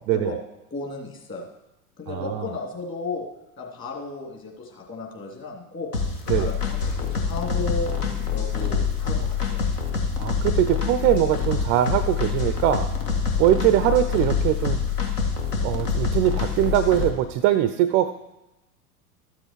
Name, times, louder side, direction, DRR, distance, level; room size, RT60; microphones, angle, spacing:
voice 1, 0.7-1.5 2.0-3.3 3.6-5.9 6.2-7.9 8.3-9.6 13.5-13.9, left 3 dB, 25° left, 0 dB, 2.9 m, -34 dB
voice 2, 2.1-2.5 6.3-6.5 10.2-12.9 13.4-14.8 15.6-18.1, right 12 dB, 30° right, 11 dB, 0.4 m, -22 dB
sound 1, 5.9-17.1, left 6 dB, 75° left, 1.9 m, -26 dB
13.0 x 7.7 x 4.5 m, 0.97 s
figure-of-eight pair, 90°, 47 cm